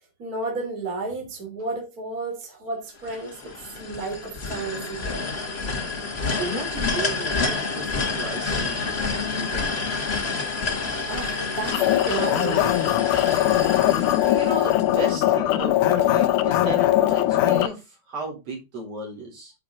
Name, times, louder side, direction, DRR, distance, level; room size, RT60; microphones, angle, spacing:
voice 1, 0.2-5.3 11.1-12.8, right 3 dB, 30° right, 3.4 m, -32 dB
sound 1, 3.0-15.1, left 4 dB, 35° left, 1.0 m, -29 dB
voice 2, 6.4-10.4 14.2-19.5, right 2 dB, 50° right, 5.1 m, -34 dB
sound 2, 11.7-17.7, left 13 dB, 80° left, 2.2 m, -21 dB
9.6 x 7.0 x 3.9 m
omnidirectional pair, 3.6 m